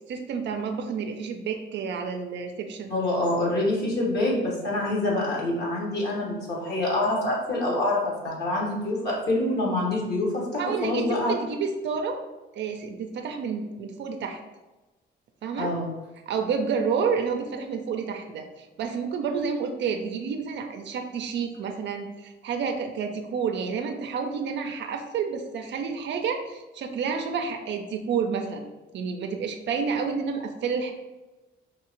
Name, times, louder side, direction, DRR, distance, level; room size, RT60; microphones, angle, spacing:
voice 1, 0.1-2.9 10.6-12.2 12.5-14.4 15.4-15.7 16.3-28.7 28.9-30.9, right 5 dB, 65° right, 5 dB, 0.5 m, -30 dB
voice 2, 2.9-11.3 15.6-15.9, left 1 dB, 55° left, -4 dB, 1.3 m, -26 dB
4.7 x 2.4 x 3.0 m, 1.1 s
cardioid pair, 90°, 20 cm